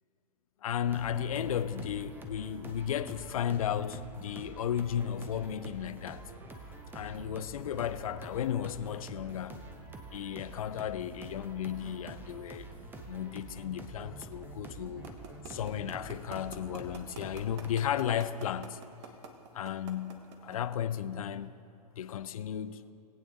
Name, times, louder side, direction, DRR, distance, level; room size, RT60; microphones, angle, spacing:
voice 1, 0.6-6.3 6.9-9.6 10.1-12.7 13.1-15.2 15.5-18.8 19.5-21.6 22.0-22.8, left 9 dB, 60° left, 0.6 m, -34 dB
sound 1, 0.9-17.7, right 2 dB, 10° right, 1.0 m, -47 dB
sound 2, 15.0-20.7, right 7 dB, 45° right, 1.3 m, -45 dB
19.0 x 8.9 x 3.9 m
figure-of-eight pair, 110°, 21 cm